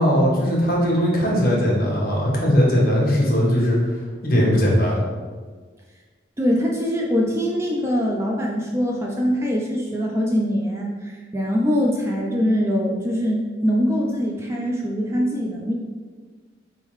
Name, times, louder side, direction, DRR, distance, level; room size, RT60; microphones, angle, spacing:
voice 1, 0.0-3.8 4.2-5.0, equal, 55° left, -4 dB, 1.2 m, -19 dB
voice 2, 6.4-15.7, equal, 15° right, -2 dB, 0.4 m, -23 dB
4.5 x 3.6 x 3.1 m, 1.5 s
head